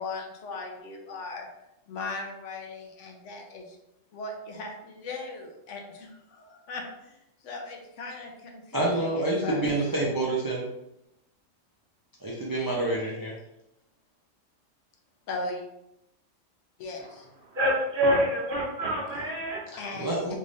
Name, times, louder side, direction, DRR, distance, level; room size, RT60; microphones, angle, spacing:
voice 1, 0.0-1.5 1.9-3.8 4.1-7.2 7.4-9.7 15.3-15.6 16.8-17.3 19.8-20.4, left 3 dB, 70° left, 2 dB, 1.0 m, -38 dB
voice 2, 8.7-10.7 12.2-13.3 20.0-20.3, right 2 dB, 30° right, -5 dB, 0.4 m, -27 dB
voice 3, 17.5-19.6, equal, 50° right, -3 dB, 0.8 m, -26 dB
3.5 x 3.2 x 2.6 m, 0.85 s
omnidirectional pair, 1.3 m